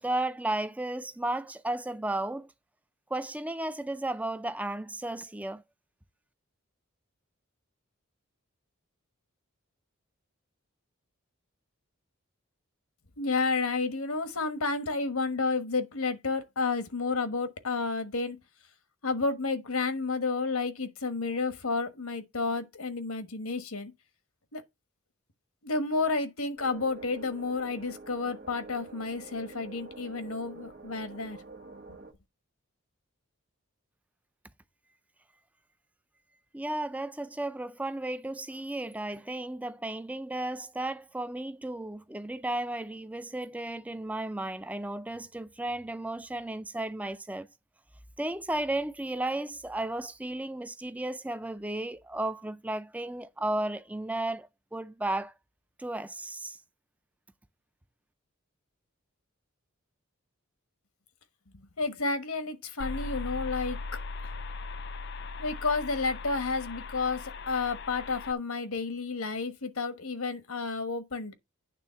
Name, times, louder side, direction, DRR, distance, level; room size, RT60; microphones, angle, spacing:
voice 1, 0.0-2.5 3.1-5.6 36.5-47.5 48.2-55.3 55.8-56.6, right 1 dB, 5° right, 0.4 m, -34 dB
voice 2, 13.2-18.4 19.0-23.9 24.5-24.6 25.6-31.4 61.5-63.8 65.4-71.3, left 3 dB, 80° left, 1.3 m, -31 dB
sound 1, 26.6-32.1, right 3 dB, 45° right, 1.4 m, -46 dB
sound 2, 62.8-68.3, left 3 dB, 50° left, 0.5 m, -38 dB
9.1 x 3.6 x 5.7 m
head